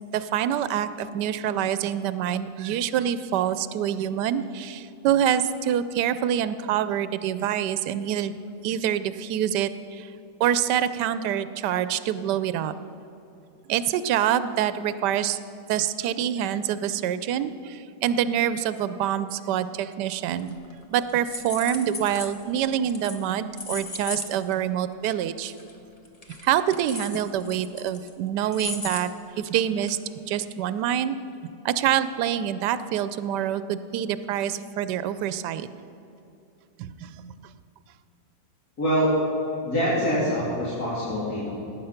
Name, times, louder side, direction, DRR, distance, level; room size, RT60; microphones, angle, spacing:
voice 1, 0.1-8.3 8.6-10.1 10.4-12.7 13.7-15.4 15.7-20.6 20.9-25.5 26.4-30.0 30.3-31.2 31.6-35.7 36.8-37.5, right 10 dB, 85° right, 13 dB, 1.2 m, -26 dB
sound 1, 20.4-20.8 21.1-22.4 22.9-23.3 23.6-24.3 24.5-24.6 25.0-25.1 25.5-25.7 26.1-28.1 28.5-29.0 29.5-29.6 29.9-30.0, left 2 dB, 25° left, 1.0 m, -36 dB
voice 2, 38.8-39.1 39.6-41.5, equal, 65° left, -9 dB, 3.5 m, -24 dB
18.0 x 9.1 x 5.8 m, 2.8 s
omnidirectional pair, 1.8 m